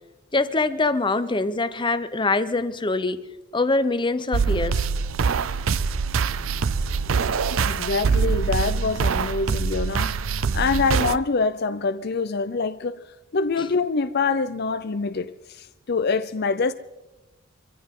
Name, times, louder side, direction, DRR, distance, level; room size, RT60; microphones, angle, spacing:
voice 1, 0.3-3.2 3.5-4.9 13.6-13.7, left 3 dB, 25° left, 0.8 m, -24 dB
sound 1, 4.3-11.2, right 5 dB, 85° right, 0.5 m, -24 dB
voice 2, 7.6-13.0 13.3-15.3 15.6-16.7, left 4 dB, 55° left, 0.6 m, -25 dB
25.0 x 15.0 x 3.8 m
head